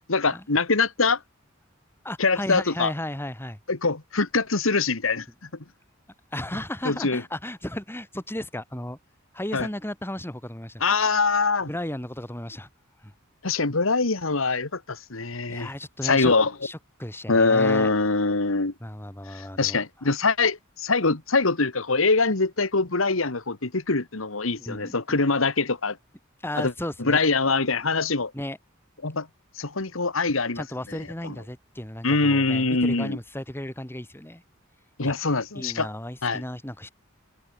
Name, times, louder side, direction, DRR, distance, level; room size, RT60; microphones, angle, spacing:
voice 1, 0.1-1.2 2.2-2.9 3.7-5.3 6.8-7.2 9.5-9.7 10.8-11.7 13.4-15.7 16.0-16.5 17.3-18.7 19.3-26.0 26.6-26.7 27.1-28.3 29.0-29.3 29.6-30.6 31.2-31.3 32.0-33.2 35.0-35.9 36.2-36.4, left 3 dB, 85° left, 1.9 m, -23 dB
voice 2, 2.0-3.6 6.3-9.0 9.3-11.1 11.7-12.7 13.0-13.1 15.5-16.3 16.6-17.9 18.8-19.8 24.6-25.2 26.4-27.3 28.3-28.6 30.5-34.4 35.0-35.3 35.5-36.9, left 1 dB, 10° left, 2.9 m, -34 dB
head